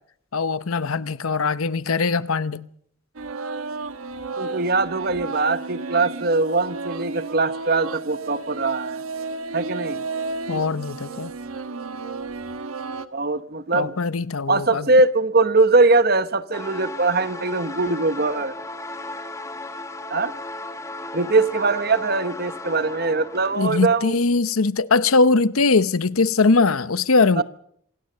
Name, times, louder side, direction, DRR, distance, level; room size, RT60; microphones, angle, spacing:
voice 1, 0.3-2.7 10.5-11.3 13.7-14.9 23.6-27.4, left 4 dB, 85° left, 0.8 m, -21 dB
sound 1, 3.1-13.1, right 3 dB, 85° right, 1.3 m, -32 dB
voice 2, 4.4-9.0 9.5-10.0 13.1-14.0 14.5-18.5 20.1-20.3 21.1-24.1 27.4-27.5, right 3 dB, 45° right, 1.0 m, -21 dB
sound 2, 16.5-24.0, left 2 dB, 15° left, 1.7 m, -35 dB
26.5 x 17.5 x 6.7 m
head